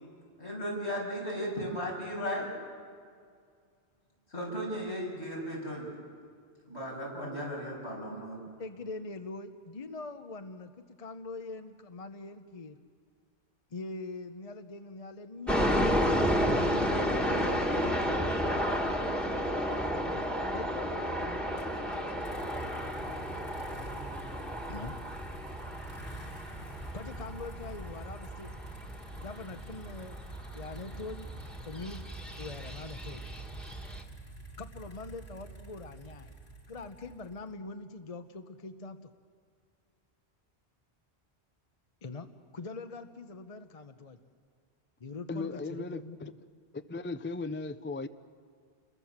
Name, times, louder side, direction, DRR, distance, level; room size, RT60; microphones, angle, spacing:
voice 1, 0.4-2.5 4.3-5.9 6.7-8.4, equal, 75° left, -3 dB, 7.7 m, -36 dB
voice 2, 8.6-12.8 13.7-15.7 16.4-18.6 20.5-21.4 24.7-25.0 26.9-28.5 29.2-30.2 30.5-31.3 31.6-32.0 32.3-33.3 34.0-34.1 34.6-36.3 36.7-39.1 42.0-42.3 42.5-44.2 45.0-46.2, left 3 dB, 35° left, 8 dB, 0.9 m, -43 dB
sound 1, 15.5-34.0, equal, ahead, 1.7 m, -32 dB
sound 2, 21.6-37.5, right 2 dB, 50° left, 2.7 m, -48 dB
voice 3, 45.3-46.3 46.7-48.1, left 3 dB, 15° left, 12 dB, 0.4 m, -37 dB
29.5 x 22.0 x 7.3 m, 2.2 s
omnidirectional pair, 1.1 m